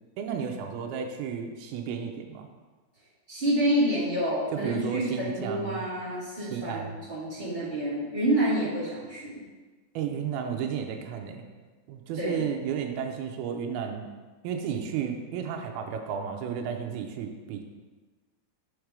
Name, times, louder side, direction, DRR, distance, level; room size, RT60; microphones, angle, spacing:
voice 1, 0.2-2.5 4.5-5.9 6.4-7.0 10.0-11.4 11.9-14.1 14.4-17.6, right 7 dB, 80° right, 4 dB, 2.4 m, -33 dB
voice 2, 3.3-9.4 12.2-12.4, right 1 dB, 25° right, -10 dB, 1.2 m, -28 dB
6.4 x 4.7 x 5.0 m, 1.3 s
omnidirectional pair, 4.8 m